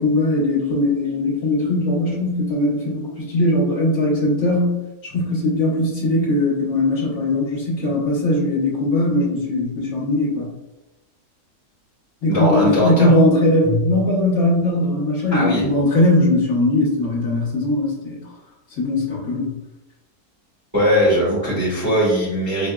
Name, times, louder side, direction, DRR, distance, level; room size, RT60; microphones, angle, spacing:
voice 1, 0.0-10.5 12.2-18.2 18.8-19.5, left 1 dB, 55° left, -6 dB, 1.6 m, -19 dB
voice 2, 12.3-13.1 15.3-15.7 20.7-22.7, equal, 10° right, -8 dB, 1.3 m, -19 dB
5.0 x 2.7 x 2.3 m, 0.98 s
omnidirectional pair, 1.6 m